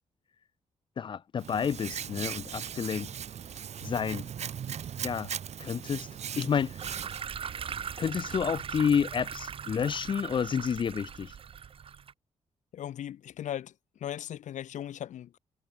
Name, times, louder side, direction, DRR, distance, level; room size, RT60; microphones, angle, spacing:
voice 1, 1.0-3.1 3.8-4.3 5.0-5.3 5.6-6.1 6.4-7.0 8.0-11.3, left 7 dB, 40° left, 0.4 m, -30 dB
Hands, 1.4-7.2, right 8 dB, 65° right, 1.7 m, -38 dB
sound 1, 6.8-12.1, right 7 dB, 50° right, 0.7 m, -39 dB
voice 2, 12.7-13.7 14.0-15.4, left 11 dB, 90° left, 1.8 m, -38 dB
cardioid pair, 120°, 12 cm